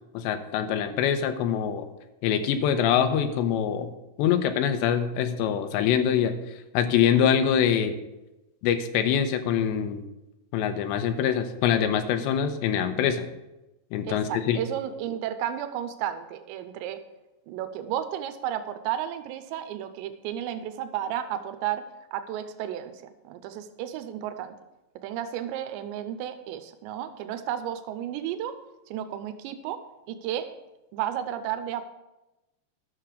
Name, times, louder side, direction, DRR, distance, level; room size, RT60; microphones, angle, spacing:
voice 1, 0.1-1.9 2.2-3.9 4.2-6.4 6.7-7.9 8.6-10.0 10.5-13.3 13.9-14.6, left 8 dB, 80° left, 8 dB, 3.0 m, -24 dB
voice 2, 14.1-17.0 17.5-21.8 22.1-24.5 25.0-28.6 28.9-29.8 30.1-30.5 30.9-31.8, right 10 dB, 90° right, 10 dB, 2.9 m, -33 dB
12.0 x 6.7 x 6.3 m, 0.99 s
omnidirectional pair, 5.1 m